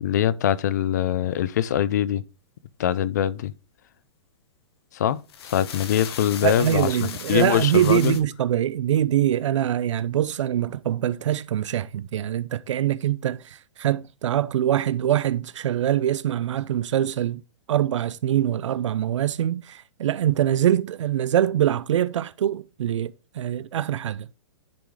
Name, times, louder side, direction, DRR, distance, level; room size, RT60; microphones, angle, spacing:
voice 1, 0.0-2.2 2.8-3.5 4.9-8.2, left 10 dB, 35° left, 0.4 m, -23 dB
sound 1, 5.1-8.2, left 7 dB, 55° left, 1.3 m, -37 dB
voice 2, 6.4-17.4 17.7-24.3, right 11 dB, 75° right, 0.5 m, -24 dB
10.5 x 3.8 x 4.7 m
hypercardioid pair, 175°, 16 cm